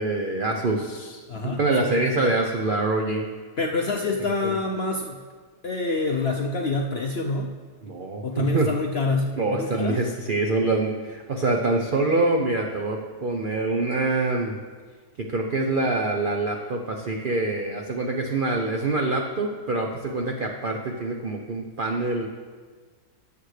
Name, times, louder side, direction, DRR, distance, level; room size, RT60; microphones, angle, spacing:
voice 1, 0.0-3.3 4.2-4.5 7.8-8.7 9.4-14.6 15.2-22.3, right 2 dB, 50° right, 2 dB, 0.6 m, -25 dB
voice 2, 1.3-2.1 3.6-5.2 5.6-7.5 8.2-10.0, left 3 dB, 60° left, 2 dB, 0.6 m, -27 dB
18.0 x 7.2 x 3.3 m, 1.5 s
omnidirectional pair, 1.8 m